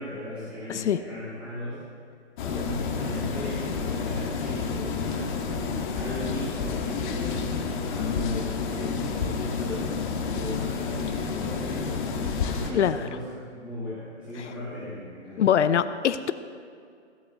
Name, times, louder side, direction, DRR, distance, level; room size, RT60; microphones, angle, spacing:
voice 1, 0.0-1.8 2.4-9.8 10.2-15.5, left 1 dB, 5° right, -13 dB, 3.3 m, -37 dB
sound 1, 2.4-12.7, left 5 dB, 45° left, 1.7 m, -30 dB
voice 2, 15.4-16.3, left 9 dB, 75° left, 12 dB, 0.7 m, -23 dB
16.5 x 13.0 x 4.0 m, 2.3 s
hypercardioid pair, 155°, 35 cm